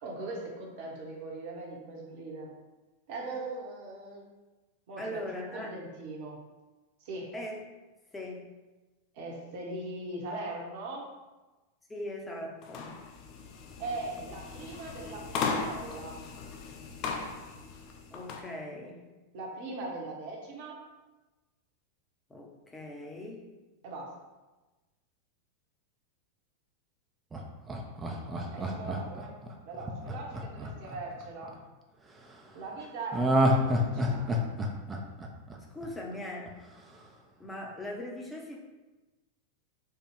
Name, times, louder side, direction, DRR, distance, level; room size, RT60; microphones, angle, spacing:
voice 1, 0.0-2.5 3.1-4.3 4.9-6.4 7.0-7.3 9.1-11.1 13.8-16.1 19.3-20.8 23.8-24.1 28.5-29.3 29.6-31.5 32.5-33.3 33.7-34.4, right 2 dB, 50° right, -2 dB, 1.1 m, -40 dB
voice 2, 5.0-5.7 7.3-7.6 8.1-8.5 11.9-13.0 18.1-19.0 22.3-23.5 35.7-36.5 37.4-38.6, left 1 dB, 10° left, -1 dB, 0.9 m, -40 dB
sound 1, 12.6-18.5, left 5 dB, 35° left, 0.6 m, -37 dB
Laughter, 27.3-31.5 33.1-36.1 36.5-36.6, equal, 15° right, 0.6 m, -29 dB
4.6 x 2.4 x 4.8 m, 1.1 s
figure-of-eight pair, 90°, 0 cm